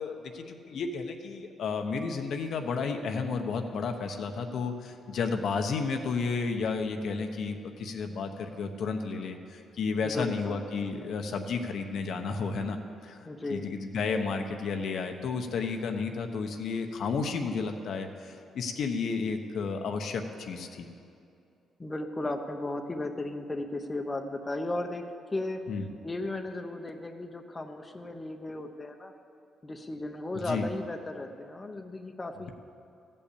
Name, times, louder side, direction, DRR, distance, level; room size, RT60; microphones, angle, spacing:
voice 1, 0.0-12.8 13.0-13.2 13.5-20.9 25.7-25.9 30.3-30.7, left 4 dB, 65° left, 5 dB, 0.9 m, -32 dB
voice 2, 10.0-10.6 13.3-13.7 21.8-25.7 26.0-29.1 29.6-32.5, left 2 dB, 20° left, 5 dB, 0.8 m, -35 dB
14.5 x 5.5 x 8.5 m, 2.6 s
cardioid pair, 90°, 0 cm